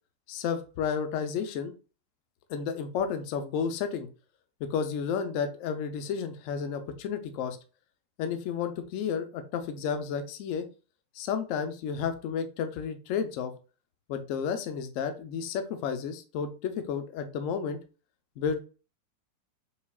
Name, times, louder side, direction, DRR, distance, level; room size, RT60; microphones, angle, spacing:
voice 1, 0.3-1.7 2.5-4.1 4.7-7.6 8.2-10.7 11.2-13.5 14.1-17.8 18.4-18.6, left 6 dB, 90° left, 7 dB, 0.6 m, -32 dB
5.3 x 2.4 x 2.2 m, 0.35 s
omnidirectional pair, 2.0 m